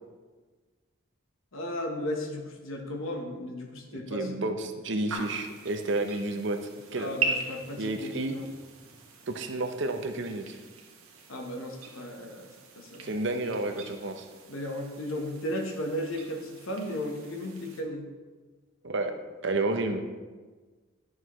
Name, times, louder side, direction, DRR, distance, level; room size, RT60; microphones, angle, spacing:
voice 1, 1.5-4.4 6.9-8.4 11.3-13.1 14.5-18.1, left 1 dB, 75° left, 2 dB, 1.0 m, -35 dB
voice 2, 3.9-6.6 6.9-7.1 7.8-8.4 9.3-10.6 13.0-14.3 18.8-19.1 19.4-20.0, right 2 dB, 55° right, 6 dB, 0.6 m, -30 dB
sound 1, 5.1-17.8, right 4 dB, 85° right, 1.1 m, -40 dB
9.7 x 6.2 x 3.1 m, 1.3 s
head